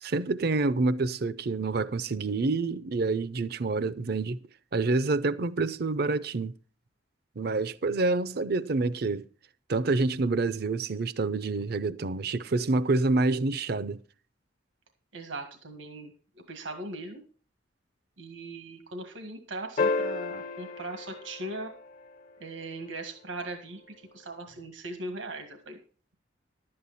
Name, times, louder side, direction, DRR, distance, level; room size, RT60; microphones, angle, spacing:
voice 1, 0.0-4.4 4.7-6.5 7.4-9.3 9.7-14.0, right 3 dB, 55° right, 0.6 m, -27 dB
voice 2, 15.1-17.2 18.2-21.7 22.4-25.8, right 2 dB, 85° right, 1.7 m, -39 dB
sound 1, 19.8-22.3 24.5-24.6, left 3 dB, 45° left, 0.7 m, -32 dB
11.5 x 8.7 x 4.1 m
head